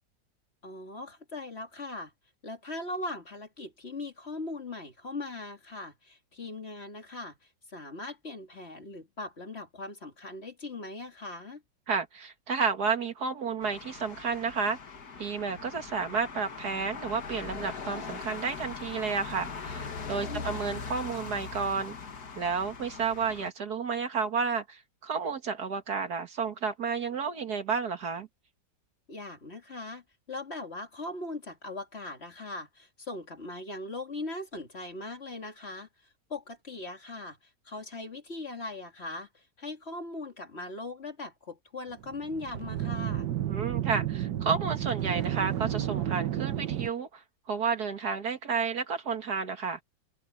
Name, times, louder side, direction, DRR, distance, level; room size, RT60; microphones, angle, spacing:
voice 1, 0.6-2.1 2.4-7.4 7.7-11.6 20.2-20.6 29.1-37.4 37.6-43.3, left 2 dB, 35° left, 2.6 m, -40 dB
voice 2, 11.9-14.8 15.2-22.0 22.4-28.3 43.5-49.8, right 5 dB, 65° right, 2.3 m, -31 dB
sound 1, 13.6-23.5, left 5 dB, 60° left, 2.2 m, -40 dB
sound 2, 41.9-46.9, right 11 dB, 80° right, 1.6 m, -31 dB
omnidirectional pair, 1.9 m